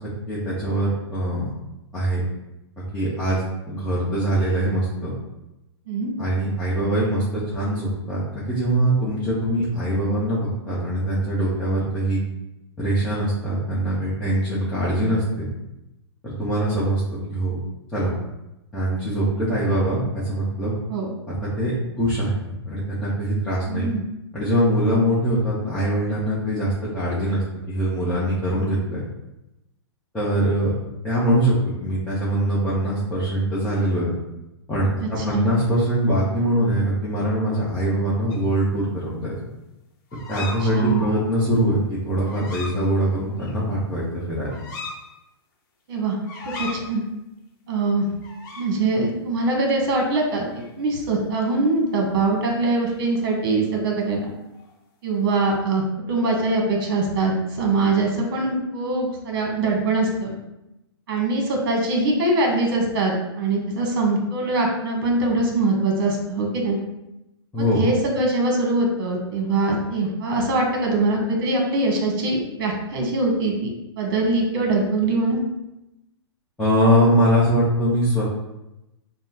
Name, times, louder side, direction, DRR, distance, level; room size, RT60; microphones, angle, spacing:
voice 1, 0.3-1.5 1.9-2.2 2.9-5.1 6.2-12.2 12.8-15.5 16.2-17.0 17.3-17.6 17.9-18.1 18.7-20.7 21.6-23.9 24.3-29.0 30.1-30.7 31.0-31.5 31.8-34.1 34.7-39.3 40.3-44.5 67.5-67.9 76.6-78.3, right 1 dB, 5° left, -11 dB, 0.8 m, -22 dB
voice 2, 23.7-24.0 35.0-35.5 40.7-41.0 45.9-46.2 46.6-47.0 47.7-48.0 48.6-54.3 55.0-55.8 56.1-60.4 61.1-66.8 67.6-73.7 74.0-75.4, right 2 dB, 50° right, 0 dB, 1.2 m, -23 dB
sound 1, 38.3-38.4 40.1-41.3 42.3-42.8 43.4-43.5 44.5-45.0 46.2-46.8 48.2-48.7 49.9-50.1 50.4-50.7 54.0-54.7, left 3 dB, 45° left, 0.9 m, -36 dB
6.0 x 2.1 x 2.8 m, 0.92 s
hypercardioid pair, 150°, 14 cm